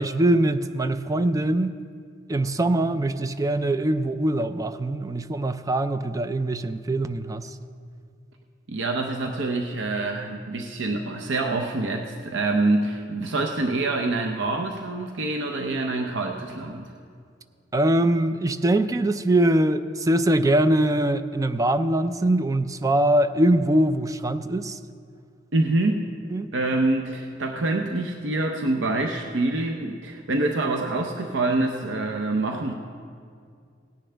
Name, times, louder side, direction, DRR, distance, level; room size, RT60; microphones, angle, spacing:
voice 1, 0.0-1.8 2.3-7.6 17.7-24.8 26.3-26.5, right 1 dB, 20° right, 11 dB, 0.4 m, -22 dB
voice 2, 8.7-16.8 25.5-26.1 26.5-32.7, right 2 dB, 80° right, 3 dB, 0.7 m, -26 dB
17.5 x 10.0 x 3.4 m, 2.3 s
head